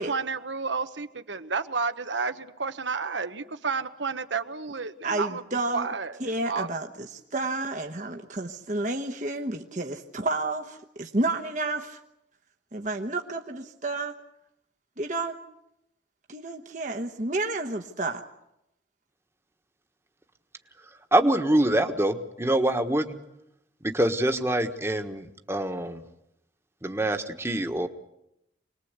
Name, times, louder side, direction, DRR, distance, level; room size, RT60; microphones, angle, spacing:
voice 1, 0.0-5.4 5.7-6.7, right 4 dB, 85° right, 10 dB, 1.3 m, -31 dB
voice 2, 5.0-5.9 6.2-12.0 12.7-14.1 15.0-15.4 16.3-18.2, right 2 dB, 45° right, 3 dB, 1.2 m, -30 dB
voice 3, 21.1-23.2 23.8-26.0 26.8-27.9, right 1 dB, 15° right, 6 dB, 1.4 m, -25 dB
25.5 x 20.0 x 8.2 m, 0.85 s
head